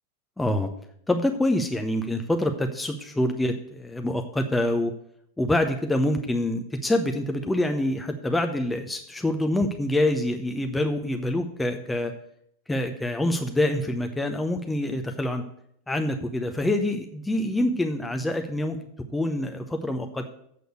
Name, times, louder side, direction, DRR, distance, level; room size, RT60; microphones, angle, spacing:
voice 1, 0.4-0.7 1.1-4.9 5.4-12.1 12.7-15.4 15.9-18.8 19.1-20.2, left 1 dB, 5° left, 5 dB, 0.7 m, -26 dB
7.8 x 6.7 x 6.5 m, 0.69 s
figure-of-eight pair, 90°, 0 cm